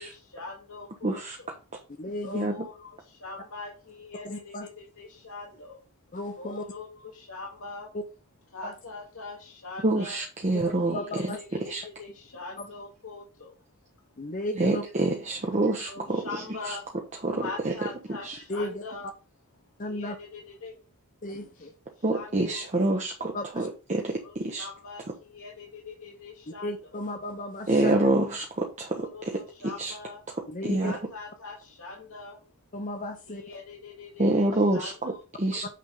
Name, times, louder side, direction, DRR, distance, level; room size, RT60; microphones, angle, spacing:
voice 1, 0.0-1.5 2.2-5.8 6.4-7.9 8.5-10.2 10.8-13.6 15.9-16.9 17.3-19.1 19.8-20.8 21.5-21.7 22.0-23.0 24.2-26.8 28.9-30.2 30.8-32.4 33.3-35.2 35.5-35.6, left 3 dB, 65° left, -3 dB, 1.9 m, -42 dB
voice 2, 1.0-1.8 2.3-2.7 9.8-11.8 14.6-16.8 17.2-17.7 18.2-18.4 22.0-24.7 25.1-25.2 27.7-29.9 30.4-30.9 34.2-35.6, right 2 dB, 30° right, 1 dB, 1.0 m, -27 dB
voice 3, 2.0-2.5 4.2-4.7 6.1-6.6 7.9-8.0 8.6-8.7 10.9-11.4 12.6-12.7 14.2-14.8 18.5-18.8 19.8-20.2 21.2-21.7 23.3-23.7 26.5-27.9 30.5-31.0 32.7-33.4, left 1 dB, 35° left, 6 dB, 0.7 m, -34 dB
8.5 x 3.5 x 5.2 m, 0.32 s
head